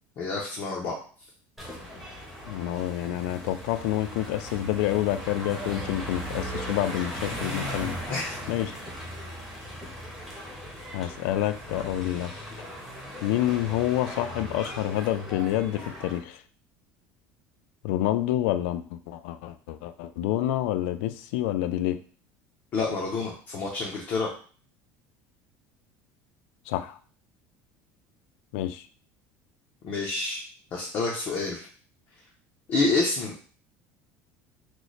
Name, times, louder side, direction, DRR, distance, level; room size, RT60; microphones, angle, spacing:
voice 1, 0.2-1.0 8.1-8.4 22.7-24.3 29.8-30.4 30.7-31.7 32.7-33.4, left 3 dB, 35° left, -2 dB, 0.6 m, -28 dB
sound 1, 1.6-16.2, equal, ahead, 0.7 m, -38 dB
voice 2, 2.5-8.0 8.5-8.7 10.9-12.3 13.2-16.4 17.8-22.0 26.7-27.0 28.5-28.9, left 13 dB, 80° left, 11 dB, 0.3 m, -28 dB
3.1 x 2.1 x 3.9 m, 0.41 s
cardioid pair, 180°, 7 cm